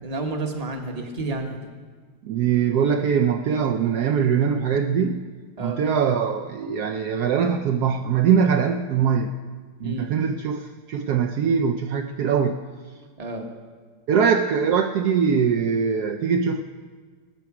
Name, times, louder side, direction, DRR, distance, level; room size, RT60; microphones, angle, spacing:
voice 1, 0.0-1.7 5.6-5.8 9.8-10.1 13.2-13.5, right 2 dB, 25° right, 3 dB, 0.9 m, -30 dB
voice 2, 2.2-5.2 5.6-9.3 9.8-12.6 14.1-16.6, right 7 dB, 85° right, 6 dB, 0.8 m, -22 dB
19.5 x 8.5 x 5.9 m, 1.5 s
omnidirectional pair, 2.4 m